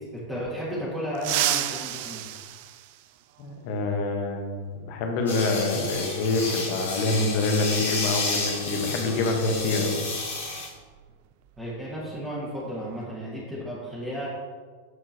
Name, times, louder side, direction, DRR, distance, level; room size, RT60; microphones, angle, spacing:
voice 1, 0.1-2.2 11.6-14.3, equal, 10° right, -8 dB, 2.1 m, -33 dB
sound 1, 1.2-3.6 5.2-5.3 6.5-6.6 8.3-8.4 8.8-9.0 9.5-11.7 11.9-12.2 12.6-13.0, right 13 dB, 50° right, 0.3 m, -32 dB
voice 2, 3.4-10.0, left 2 dB, 45° left, 3 dB, 1.3 m, -26 dB
sound 2, 5.3-10.7, left 3 dB, 70° left, 1.9 m, -31 dB
13.0 x 4.4 x 3.0 m, 1.5 s
figure-of-eight pair, 90°, 0 cm